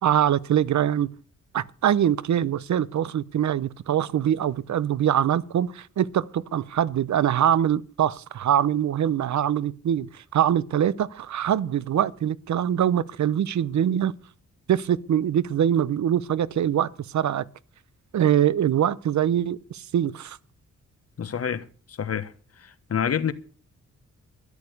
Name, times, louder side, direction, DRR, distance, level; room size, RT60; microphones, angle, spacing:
voice 1, 0.0-1.1 1.5-14.1 14.7-17.4 18.1-20.4, right 10 dB, 70° right, 0.8 m, -23 dB
voice 2, 21.2-22.3 22.6-23.3, left 8 dB, 55° left, 1.2 m, -28 dB
13.0 x 11.0 x 6.6 m
cardioid pair, 95°, 30 cm